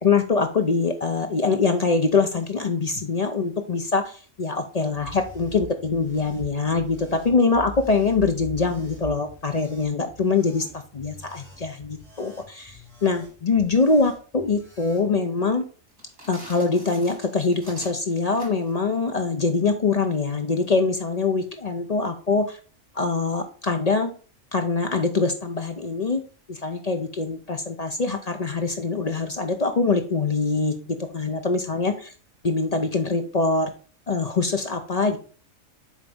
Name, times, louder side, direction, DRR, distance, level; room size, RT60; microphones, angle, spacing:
voice 1, 0.0-15.6 16.3-22.6 23.0-24.1 24.5-26.2 26.5-32.1 32.4-33.7 34.1-35.2, left 4 dB, 40° left, 6 dB, 0.6 m, -24 dB
sound 1, 4.9-15.1, equal, ahead, 2.6 m, -44 dB
sound 2, 15.9-18.8, right 1 dB, 90° right, 2.8 m, -45 dB
7.4 x 4.0 x 3.5 m, 0.38 s
omnidirectional pair, 1.4 m